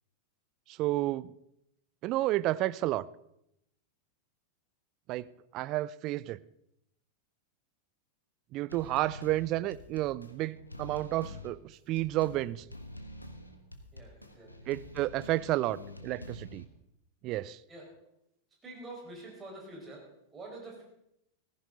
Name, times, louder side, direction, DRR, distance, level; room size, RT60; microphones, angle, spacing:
voice 1, 0.8-1.3 2.0-3.0 5.1-5.3 5.5-6.4 8.5-11.6 11.9-12.6 14.7-15.8 16.0-16.6 17.2-17.6, right 16 dB, 40° right, 0.4 m, -31 dB
sound 1, 8.7-16.6, left 1 dB, 85° left, 1.3 m, -47 dB
voice 2, 13.9-14.5 17.7-17.9 18.6-20.8, right 2 dB, 20° right, 4.9 m, -46 dB
15.5 x 14.5 x 3.9 m
figure-of-eight pair, 90°, 0 cm